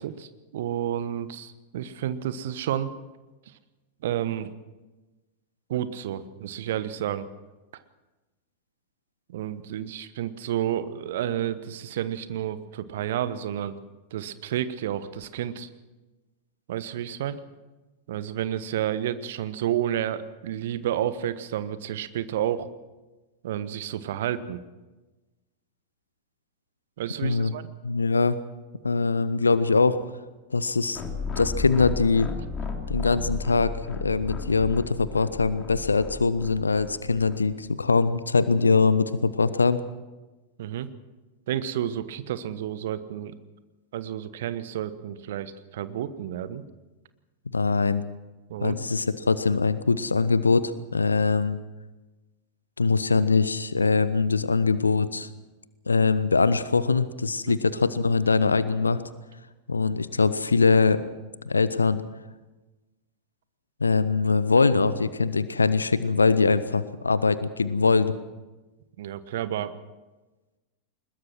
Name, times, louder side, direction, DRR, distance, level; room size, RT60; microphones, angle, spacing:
voice 1, 0.0-2.9 4.0-4.5 5.7-7.3 9.3-13.7 14.1-15.7 16.7-17.4 18.1-22.7 23.4-24.6 27.0-27.7 40.6-40.9 41.5-43.3 43.9-46.6 48.5-48.8 57.4-57.5 69.0-69.7, right 11 dB, 55° right, 14 dB, 1.2 m, -30 dB
voice 2, 27.2-27.5 27.8-28.4 28.8-30.0 30.5-31.0 31.4-32.3 32.9-39.8 47.5-48.0 48.6-51.6 52.8-55.3 55.9-59.0 59.7-61.0 61.4-62.0 63.8-68.1, left 4 dB, 75° left, 15 dB, 0.8 m, -22 dB
sound 1, 30.9-37.4, left 4 dB, 25° left, 3.2 m, -34 dB
22.0 x 20.5 x 6.1 m, 1.1 s
figure-of-eight pair, 90°, 0 cm